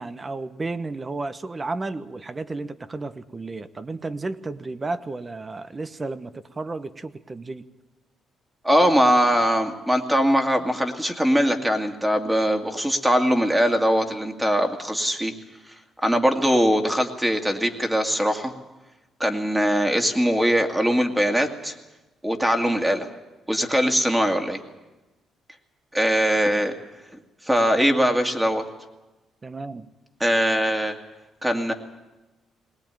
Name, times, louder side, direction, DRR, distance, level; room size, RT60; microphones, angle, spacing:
voice 1, 0.0-7.6 29.4-29.9, right 3 dB, 25° right, 12 dB, 1.0 m, -33 dB
voice 2, 8.6-15.3 16.0-18.5 19.2-21.7 22.2-23.1 23.5-24.6 25.9-26.7 27.5-28.6 30.2-30.9 31.4-31.7, equal, 10° right, 4 dB, 2.2 m, -21 dB
20.5 x 18.5 x 9.1 m, 1.1 s
cardioid pair, 90°, 0 cm